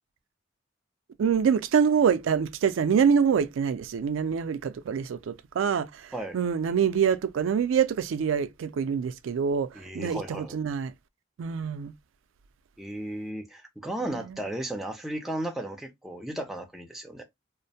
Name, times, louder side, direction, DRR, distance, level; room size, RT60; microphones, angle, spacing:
voice 1, 1.2-10.9 11.4-11.9 14.0-14.4, right 7 dB, 80° right, 0.3 m, -25 dB
voice 2, 9.7-10.6 12.8-17.2, right 1 dB, ahead, 0.4 m, -35 dB
2.5 x 2.0 x 2.7 m
head